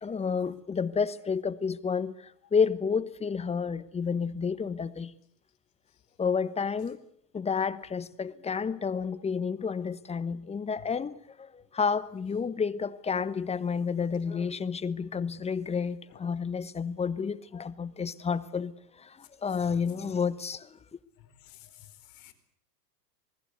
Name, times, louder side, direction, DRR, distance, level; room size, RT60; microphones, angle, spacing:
voice 1, 0.0-5.1 6.2-7.0 7.3-20.8, left 6 dB, 15° left, 1.1 m, -30 dB
voice 2, 21.2-22.3, left 12 dB, 45° left, 4.6 m, -53 dB
27.5 x 19.5 x 8.1 m
hypercardioid pair, 115°, 49 cm